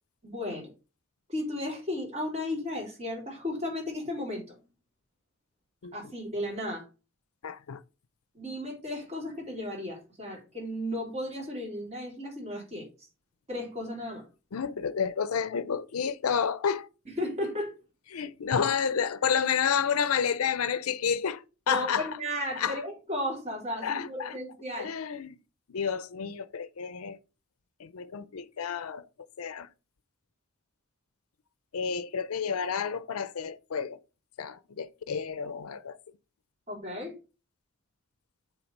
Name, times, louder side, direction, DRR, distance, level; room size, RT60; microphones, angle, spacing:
voice 1, 0.2-0.7 1.3-4.6 5.9-6.9 8.3-12.9 13.5-14.3 17.2-17.7 21.7-24.9 36.7-37.2, left 1 dB, 30° right, 3.2 m, -34 dB
voice 2, 7.4-7.8 14.5-16.9 18.1-22.1 22.6-22.8 23.8-24.4 24.8-25.4 25.7-27.2 27.8-29.0 29.4-29.7 31.7-34.0 34.4-36.0, left 7 dB, 90° left, 0.5 m, -30 dB
7.1 x 3.9 x 5.2 m
head